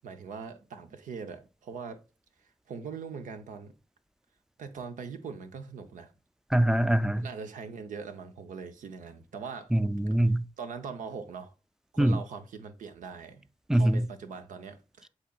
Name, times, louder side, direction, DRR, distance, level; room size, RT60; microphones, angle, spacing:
voice 1, 0.0-2.0 2.7-3.7 4.6-6.1 7.2-9.7 10.6-11.5 11.9-13.5 13.7-15.1, right 5 dB, 85° right, 0.6 m, -41 dB
voice 2, 6.5-7.3 9.7-10.4 12.0-12.2 13.7-14.0, right 1 dB, 5° right, 0.4 m, -23 dB
7.9 x 2.9 x 2.3 m
cardioid pair, 45°, 13 cm